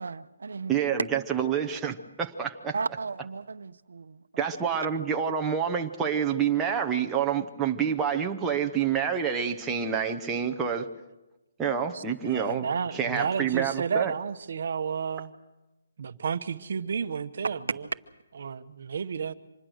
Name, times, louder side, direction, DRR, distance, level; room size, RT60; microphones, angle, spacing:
voice 1, 0.0-0.8 2.7-4.4, right 4 dB, 80° right, 0.9 m, -36 dB
voice 2, 0.7-2.7 4.4-10.9 11.6-14.1, right 7 dB, 10° right, 0.9 m, -28 dB
voice 3, 11.9-15.3 16.0-17.8 18.4-19.3, right 6 dB, 50° right, 1.1 m, -31 dB
25.5 x 21.0 x 6.4 m
hypercardioid pair, 175°, 0 cm